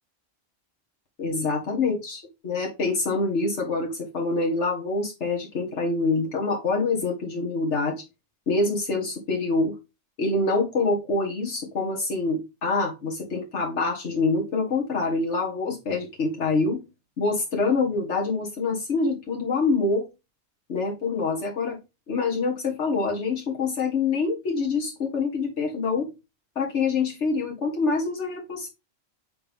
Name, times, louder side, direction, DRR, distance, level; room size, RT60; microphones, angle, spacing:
voice 1, 1.2-8.0 8.5-9.7 10.2-16.8 17.2-20.1 20.7-21.8 22.1-26.1 26.6-28.7, left 3 dB, 85° left, -2 dB, 2.0 m, -26 dB
6.7 x 4.3 x 3.5 m, 0.25 s
omnidirectional pair, 1.2 m